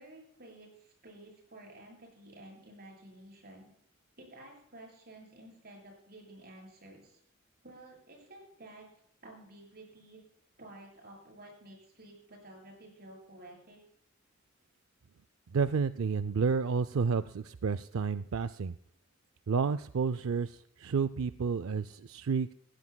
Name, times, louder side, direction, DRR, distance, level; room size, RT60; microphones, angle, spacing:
voice 1, 0.0-3.7 4.2-7.2 7.6-8.9 9.2-10.2 10.6-13.8, right 1 dB, 50° right, 0 dB, 7.5 m, -52 dB
voice 2, 15.5-18.8 19.5-22.5, right 5 dB, 90° right, 13 dB, 0.4 m, -30 dB
20.5 x 16.5 x 2.2 m, 0.68 s
head